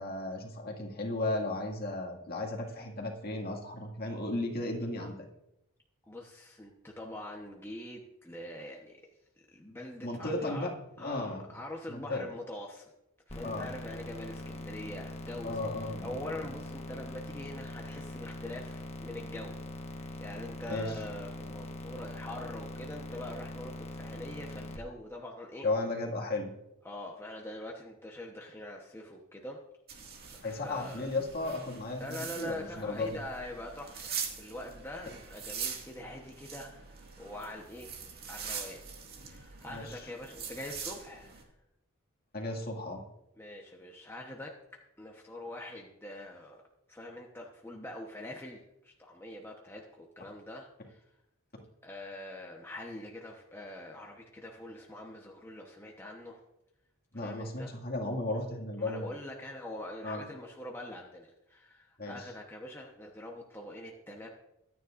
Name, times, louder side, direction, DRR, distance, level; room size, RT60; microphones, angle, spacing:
voice 1, 0.0-5.3 10.0-11.4 11.9-12.2 13.4-13.7 15.4-16.2 20.7-20.9 25.6-26.5 30.4-33.2 39.7-40.0 42.3-43.0 57.1-59.1 60.0-60.2 62.0-62.3, left 2 dB, 45° left, -1 dB, 2.1 m, -35 dB
voice 2, 6.1-9.0 9.5-10.7 11.0-12.9 13.3-25.7 26.8-29.6 30.4-31.1 32.0-38.0 38.3-38.9 39.2-41.4 43.4-44.5 45.0-46.6 46.9-51.0 51.8-56.4 57.1-57.7 58.8-64.3, left 1 dB, 10° left, -1 dB, 1.0 m, -44 dB
sound 1, 13.3-24.8, left 1 dB, 30° left, 1.2 m, -42 dB
sound 2, 29.9-41.4, right 6 dB, 45° right, 2.1 m, -43 dB
23.5 x 9.6 x 2.6 m, 0.89 s
head